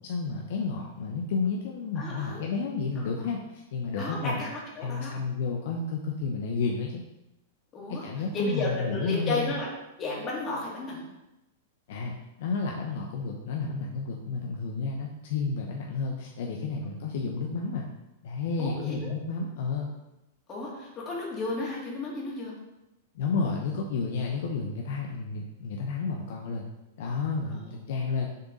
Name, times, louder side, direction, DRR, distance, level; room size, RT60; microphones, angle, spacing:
voice 1, 0.0-4.4 4.8-7.0 7.9-9.5 11.9-17.9 18.2-19.9 23.1-26.6 27.0-28.3, left 4 dB, 65° left, 0 dB, 0.8 m, -31 dB
voice 2, 2.0-2.4 3.0-3.1 4.0-4.5 4.7-5.1 7.7-9.7 9.9-11.1 16.8-17.0 18.6-19.1 20.5-22.5 27.5-27.9, left 2 dB, 30° left, -3 dB, 2.3 m, -33 dB
6.6 x 3.7 x 4.1 m, 0.95 s
hypercardioid pair, 130°, 0 cm